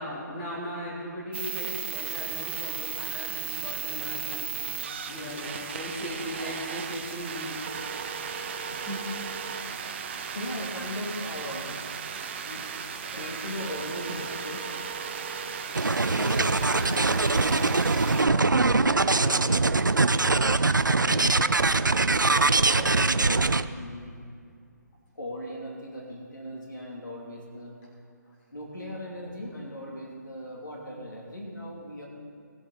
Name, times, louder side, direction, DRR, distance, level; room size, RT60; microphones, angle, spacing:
voice 1, 0.0-5.5 5.7-7.8 8.7-9.0 16.0-17.9 18.2-18.7, equal, 20° left, -7 dB, 3.5 m, -37 dB
sound 1, 1.3-18.2, right 7 dB, 35° right, 0.8 m, -35 dB
voice 2, 5.1-5.4 10.3-11.7 12.5-12.6 12.9-14.6 16.2-16.5 16.8-17.3 17.9-20.4 21.1-21.5 22.2-24.1 25.2-27.8 28.5-32.1, equal, 80° left, -2 dB, 2.9 m, -38 dB
sound 2, 15.7-23.6, right 3 dB, 85° right, 0.5 m, -23 dB
19.5 x 7.8 x 4.2 m, 2.3 s
figure-of-eight pair, 145°, 10 cm